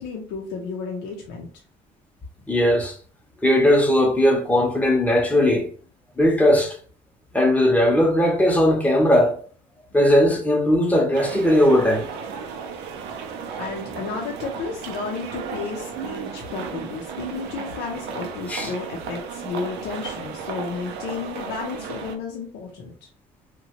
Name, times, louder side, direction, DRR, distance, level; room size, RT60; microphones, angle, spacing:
voice 1, 0.0-1.5 13.6-23.1, left 5 dB, 90° left, 0.6 m, -32 dB
voice 2, 2.5-2.9 3.4-5.7 6.2-6.8 7.3-9.4 9.9-12.1 18.5-18.7, left 1 dB, 10° left, 0.7 m, -18 dB
sound 1, 11.1-22.2, right 6 dB, 85° right, 0.4 m, -34 dB
2.9 x 2.2 x 2.8 m
cardioid pair, 110°, 17 cm